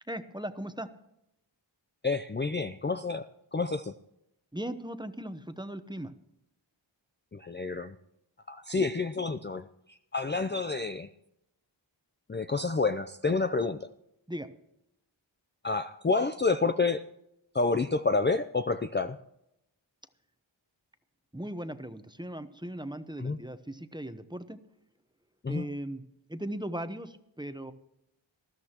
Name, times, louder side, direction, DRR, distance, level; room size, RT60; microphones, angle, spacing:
voice 1, 0.1-0.9 4.5-6.1 14.3-14.5 21.3-24.6 25.5-26.0 26.3-27.7, right 1 dB, 10° right, 10 dB, 0.9 m, -38 dB
voice 2, 2.0-3.3 3.5-3.9 7.3-7.9 8.5-11.1 12.3-13.9 15.6-17.0 17.5-19.2 23.2-23.4 25.4-25.7, left 3 dB, 25° left, 8 dB, 0.5 m, -29 dB
20.0 x 13.0 x 2.9 m, 0.82 s
wide cardioid pair, 40°, 47 cm